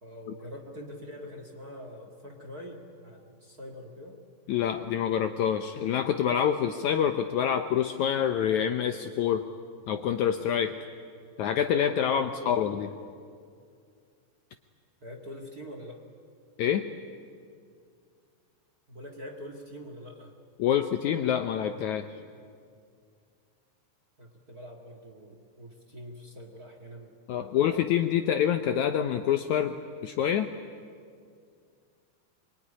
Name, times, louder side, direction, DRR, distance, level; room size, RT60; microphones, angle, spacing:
voice 1, 0.0-4.2 12.0-12.7 15.0-16.1 18.9-20.4 24.2-28.0, equal, 35° right, 3 dB, 1.7 m, -44 dB
voice 2, 4.5-9.5 9.9-10.8 11.4-12.9 16.6-16.9 20.6-22.1 27.3-29.8 30.0-30.5, left 9 dB, 75° left, 8 dB, 1.8 m, -26 dB
24.5 x 23.0 x 9.9 m, 2.3 s
omnidirectional pair, 4.1 m